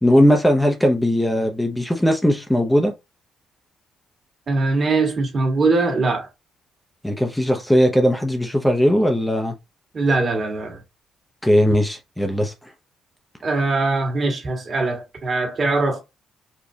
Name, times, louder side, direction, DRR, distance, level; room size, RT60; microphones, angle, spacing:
voice 1, 0.0-2.9 7.0-9.5 11.4-12.5, equal, 5° left, 0.7 m, -18 dB
voice 2, 4.5-6.3 9.9-10.8 13.4-16.0, right 3 dB, 45° right, 1.8 m, -21 dB
4.9 x 2.4 x 2.7 m
cardioid pair, 90°, 0 cm